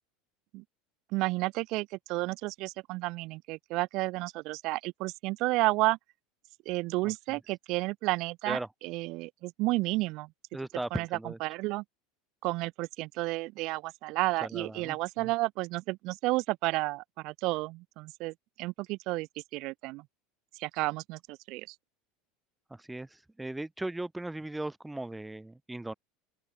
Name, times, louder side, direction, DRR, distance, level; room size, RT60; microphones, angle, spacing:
voice 1, 1.1-6.0 6.6-10.3 10.9-11.1 11.4-11.8 12.4-20.0 20.6-21.7, right 22 dB, 60° right, 1.0 m, -31 dB
voice 2, 10.5-11.4 14.4-15.3 22.7-25.9, right 2 dB, 10° right, 0.7 m, -37 dB
open air
hypercardioid pair, 100°, 0 cm